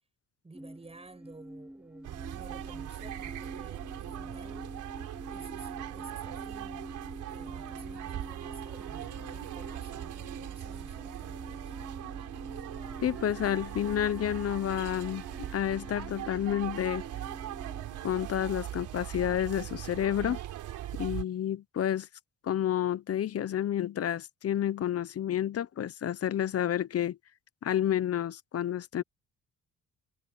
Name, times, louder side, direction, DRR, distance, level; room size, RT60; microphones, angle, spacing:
voice 1, 0.4-4.8 5.3-6.9 7.3-11.7, right 3 dB, 20° right, 6.6 m, -53 dB
sound 1, 0.5-18.0, equal, 5° right, 3.3 m, -47 dB
sound 2, 2.0-21.2, right 12 dB, 80° right, 4.1 m, -40 dB
voice 2, 13.0-15.2 15.5-17.0 18.0-20.4 20.9-22.1 22.4-27.2 27.6-29.0, left 10 dB, 50° left, 1.0 m, -30 dB
cardioid pair, 90°, 30 cm